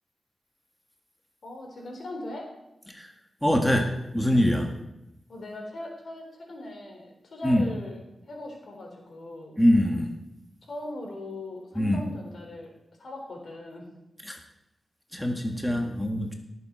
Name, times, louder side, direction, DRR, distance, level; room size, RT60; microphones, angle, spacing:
voice 1, 1.4-2.5 5.3-8.0 8.3-9.6 10.7-12.7 13.0-13.9 15.7-15.9, left 1 dB, 70° left, 1 dB, 3.8 m, -39 dB
voice 2, 3.4-4.7 7.4-7.7 9.6-10.1 11.7-12.0 14.2-14.4 15.1-16.3, equal, 5° left, 2 dB, 1.7 m, -24 dB
18.0 x 7.5 x 4.5 m, 0.90 s
cardioid pair, 65°, 0 cm